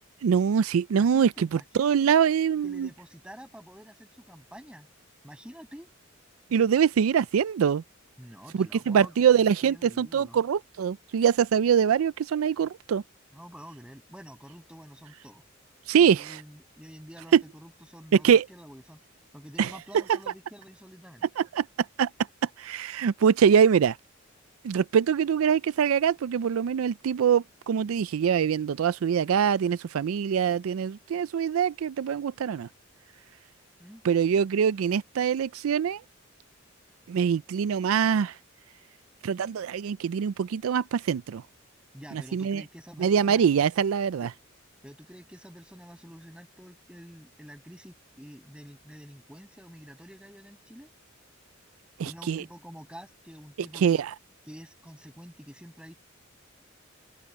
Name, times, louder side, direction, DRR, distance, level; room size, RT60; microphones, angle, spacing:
voice 1, 0.2-2.9 6.5-7.8 8.5-13.0 15.9-16.4 17.3-17.4 18.2-18.4 19.6-19.7 21.4-21.7 22.0-22.1 22.6-24.0 24.6-32.7 34.0-36.0 37.1-38.3 39.2-41.4 42.1-42.6 43.0-44.3 52.0-52.4 53.7-54.1, right 7 dB, 80° right, 0.4 m, -24 dB
voice 2, 1.0-1.5 1.7-2.2 2.6-4.9 5.2-5.9 8.2-10.4 13.3-15.4 16.0-19.0 19.3-21.3 33.8-34.0 41.9-43.7 44.8-50.9 52.1-54.0 54.5-55.9, equal, 5° right, 7.0 m, -48 dB
open air
head